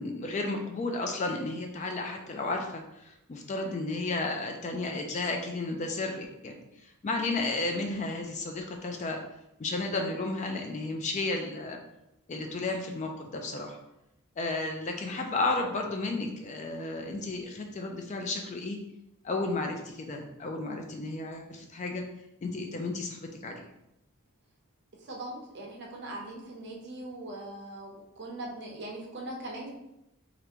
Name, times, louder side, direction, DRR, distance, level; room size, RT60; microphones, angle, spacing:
voice 1, 0.0-6.6 6.8-9.2 9.6-11.8 12.3-13.8 14.4-18.8 19.2-22.0 22.4-23.7, left 2 dB, 30° left, 3 dB, 0.3 m, -33 dB
voice 2, 25.0-29.7, right 1 dB, 50° right, 0 dB, 0.7 m, -40 dB
3.4 x 2.5 x 2.8 m, 0.87 s
head